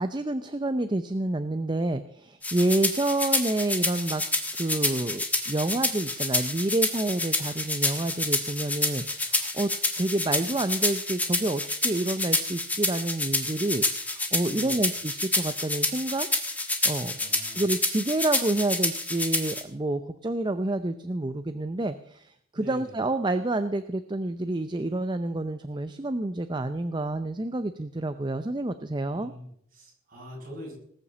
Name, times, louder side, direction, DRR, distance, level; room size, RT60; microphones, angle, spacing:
voice 1, 0.0-4.2 4.5-9.7 10.0-16.3 16.8-29.3, right 2 dB, 20° right, 10 dB, 0.5 m, -28 dB
sound 1, 2.4-19.6, left 2 dB, 5° left, 1.4 m, -28 dB
voice 2, 14.5-14.9 17.1-17.6 22.5-23.0 29.1-30.7, equal, 40° right, -3 dB, 7.1 m, -44 dB
19.5 x 7.1 x 7.4 m, 0.68 s
head